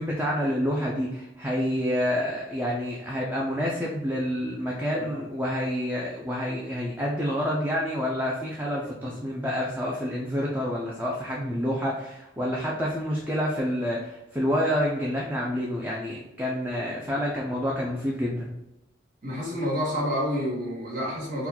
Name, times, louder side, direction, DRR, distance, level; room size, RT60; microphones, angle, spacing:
voice 1, 0.0-18.5, equal, 10° right, -3 dB, 0.4 m, -28 dB
voice 2, 4.9-5.2 9.0-9.1 19.2-21.5, equal, 50° right, -5 dB, 1.3 m, -29 dB
3.9 x 2.3 x 2.8 m, 0.93 s
head